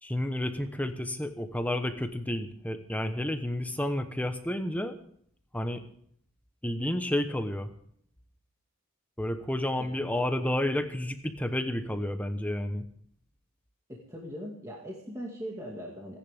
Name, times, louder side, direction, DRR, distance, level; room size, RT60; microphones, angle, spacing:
voice 1, 0.0-5.0 5.5-5.8 6.6-7.7 9.2-12.9, left 1 dB, 5° left, 8 dB, 1.0 m, -31 dB
voice 2, 13.9-16.2, equal, 15° right, -2 dB, 2.1 m, -40 dB
29.0 x 10.5 x 3.6 m, 0.62 s
head